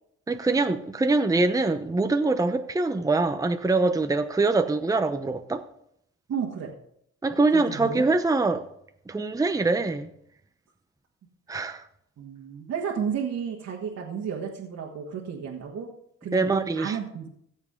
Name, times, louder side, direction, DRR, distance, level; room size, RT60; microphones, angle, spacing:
voice 1, 0.3-5.7 7.2-8.7 9.1-10.1 11.5-11.8 16.3-17.0, right 3 dB, 10° right, 0.8 m, -24 dB
voice 2, 6.3-6.7 7.5-8.0 12.2-15.9 16.2-17.3, right 7 dB, 60° right, 1.7 m, -32 dB
16.0 x 7.2 x 3.7 m
cardioid pair, 90°, 30 cm